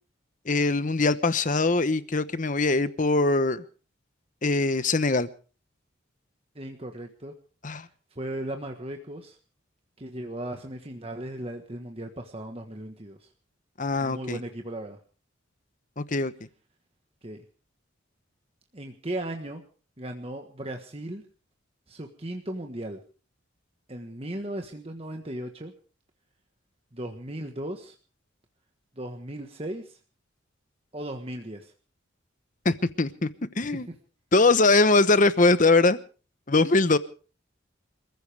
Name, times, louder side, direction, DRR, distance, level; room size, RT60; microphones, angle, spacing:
voice 1, 0.5-3.6 4.4-5.3 7.6-7.9 13.8-14.4 16.0-16.3 32.6-33.3 33.6-33.9 34.3-36.0 36.5-37.0, left 3 dB, 40° left, 13 dB, 1.0 m, -22 dB
voice 2, 6.5-7.3 8.1-9.4 10.0-13.3 14.0-15.0 17.2-17.4 18.7-19.6 20.0-21.2 21.9-23.0 23.9-25.7 26.9-27.9 29.0-30.0 30.9-31.7 33.6-34.0, right 1 dB, 30° right, 4 dB, 1.4 m, -36 dB
27.5 x 15.0 x 3.5 m, 0.39 s
head